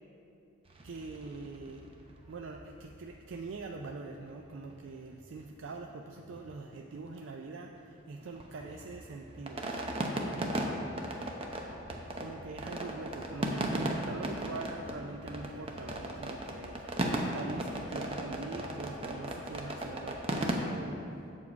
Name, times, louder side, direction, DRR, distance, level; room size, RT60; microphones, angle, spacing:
sound 1, 0.7-5.1 5.4-5.5 5.7-5.9 6.2-7.2 7.5-20.6, right 1 dB, 25° right, 0.6 m, -37 dB
voice 1, 0.8-1.9 2.3-9.8 10.3-10.7 12.2-21.3, right 3 dB, 70° right, 2 dB, 0.4 m, -44 dB
7.3 x 4.7 x 6.8 m, 2.8 s
head